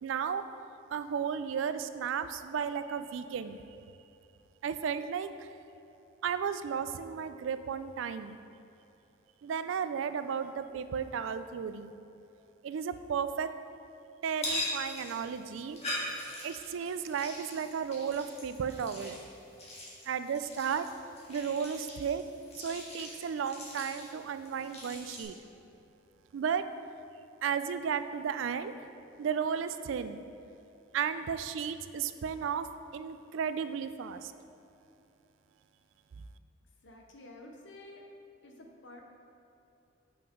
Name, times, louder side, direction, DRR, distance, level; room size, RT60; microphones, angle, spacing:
voice 1, 0.0-0.4 0.9-3.6 4.6-5.3 6.2-8.4 9.4-11.9 12.6-13.5 14.2-15.8 16.4-19.2 20.1-20.9 21.3-22.2 22.6-25.3 26.3-26.6 27.4-28.7 29.2-30.2 30.9-32.7 32.9-34.3, right 7 dB, 75° right, 11 dB, 0.3 m, -34 dB
sound 1, 14.3-25.2, left 1 dB, 35° left, 1.6 m, -42 dB
voice 2, 36.8-38.1 38.4-39.0, left 1 dB, 65° left, 2 dB, 0.9 m, -50 dB
7.0 x 5.8 x 3.7 m, 2.8 s
head